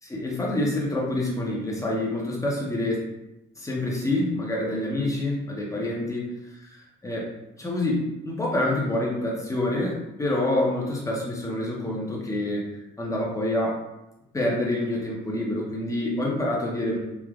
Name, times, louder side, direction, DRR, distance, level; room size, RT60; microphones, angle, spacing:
voice 1, 0.0-3.0 3.6-6.3 6.6-7.3 7.6-12.6 13.0-13.8 14.3-17.0, left 1 dB, 15° left, -3 dB, 0.8 m, -27 dB
3.3 x 2.5 x 2.4 m, 0.91 s
cardioid pair, 90°, 20 cm